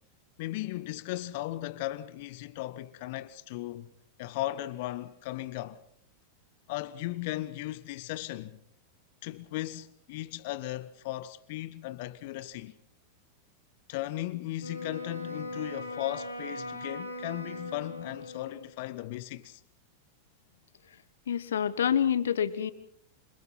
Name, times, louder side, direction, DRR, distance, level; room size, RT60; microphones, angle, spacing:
voice 1, 0.4-3.9 4.2-5.8 6.7-8.6 9.2-12.8 13.9-19.6, left 16 dB, 50° left, 1.0 m, -36 dB
Wind instrument woodwind instrument, 14.6-18.7, left 1 dB, 90° left, 5.5 m, -40 dB
voice 2, 21.3-22.7, left 8 dB, 65° left, 1.4 m, -27 dB
28.0 x 26.5 x 4.2 m
figure-of-eight pair, 90°, 0 cm